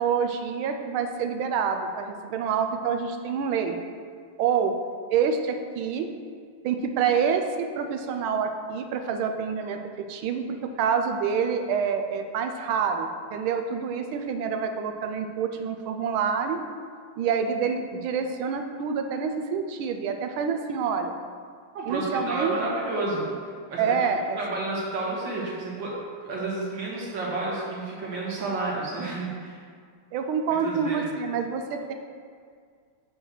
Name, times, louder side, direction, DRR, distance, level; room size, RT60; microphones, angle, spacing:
voice 1, 0.0-3.8 4.4-4.7 5.1-6.1 6.6-16.6 17.2-21.1 21.8-22.7 23.8-24.4 30.1-31.9, right 6 dB, 80° right, 6 dB, 1.5 m, -27 dB
voice 2, 21.7-23.3 23.7-24.0 24.3-25.9 26.2-29.6 30.6-31.0, right 2 dB, 65° right, -5 dB, 2.4 m, -30 dB
6.2 x 4.5 x 6.4 m, 2.1 s
omnidirectional pair, 2.2 m